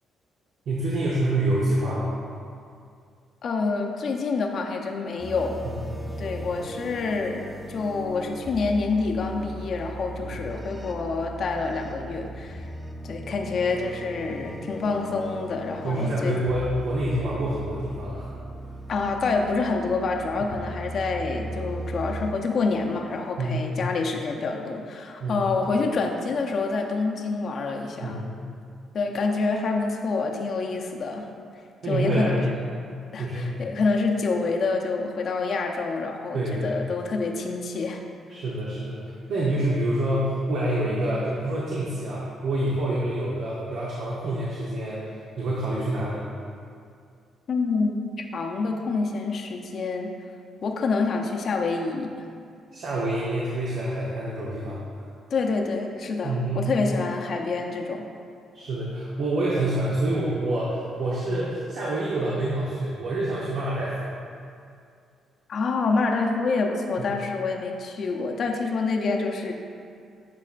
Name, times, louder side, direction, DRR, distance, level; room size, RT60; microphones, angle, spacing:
voice 1, 0.7-2.1 5.6-5.9 10.3-10.4 15.8-18.3 23.4-23.9 25.2-25.4 28.0-28.5 31.8-32.6 33.2-33.5 36.3-36.8 38.3-39.0 39.3-46.2 52.7-54.8 56.2-56.7 58.5-64.2 67.0-67.1, right 1 dB, 70° right, -6 dB, 0.9 m, -27 dB
voice 2, 3.4-5.6 6.2-7.4 7.7-12.7 13.0-16.4 18.9-28.2 28.9-31.3 31.9-32.5 33.1-38.0 47.5-50.1 50.6-52.1 55.3-58.1 65.5-69.5, left 4 dB, 55° left, 2 dB, 0.6 m, -27 dB
sound 1, 5.2-22.3, right 1 dB, 5° right, 0.7 m, -38 dB
10.5 x 4.2 x 2.5 m, 2.3 s
cardioid pair, 90°, 0 cm